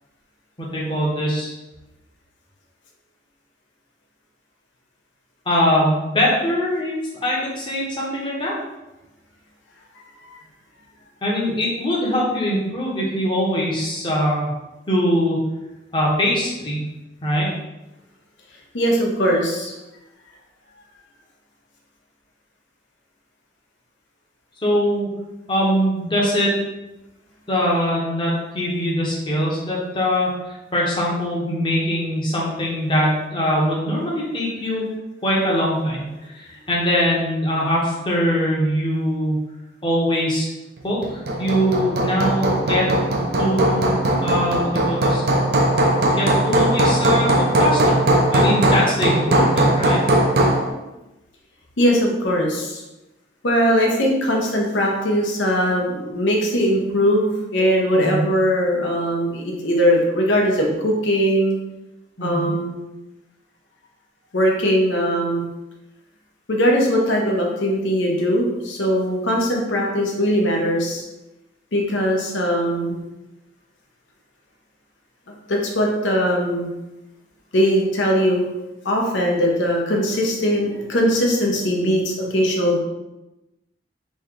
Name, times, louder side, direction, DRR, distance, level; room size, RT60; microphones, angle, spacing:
voice 1, 0.6-1.5 5.5-8.5 11.2-14.5 14.9-15.4 15.9-16.9 17.2-17.5 24.6-25.1 25.5-26.6 27.5-34.8 35.2-39.4 39.8-40.4 40.8-42.9 43.4-45.2 46.1-48.0 48.3-50.0 57.9-58.2 62.2-62.5, equal, 25° left, -4 dB, 0.9 m, -22 dB
voice 2, 18.7-19.7 51.8-52.8 53.4-61.6 62.2-62.8 64.3-65.4 66.5-71.0 71.7-73.0 75.3-76.7 77.5-78.5 78.8-82.8, equal, 75° left, 0 dB, 0.8 m, -20 dB
Hammer, 41.0-50.7, right 1 dB, 55° right, 0.5 m, -19 dB
3.1 x 2.8 x 3.6 m, 1.0 s
head